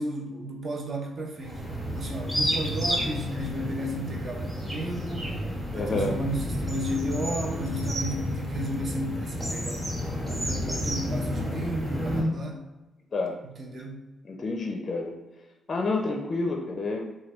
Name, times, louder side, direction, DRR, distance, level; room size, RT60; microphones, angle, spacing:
voice 1, 0.0-1.6 1.9-5.3 5.7-9.9 10.3-12.6 13.6-14.0, right 1 dB, 50° right, 0 dB, 0.6 m, -33 dB
sound 1, 1.4-12.2, equal, 20° right, 1.0 m, -31 dB
voice 2, 5.7-6.2 13.1-13.4 14.2-15.2 15.7-17.1, left 3 dB, 40° left, 1 dB, 0.4 m, -29 dB
3.2 x 2.2 x 3.0 m, 1.1 s
cardioid pair, 90°, 0 cm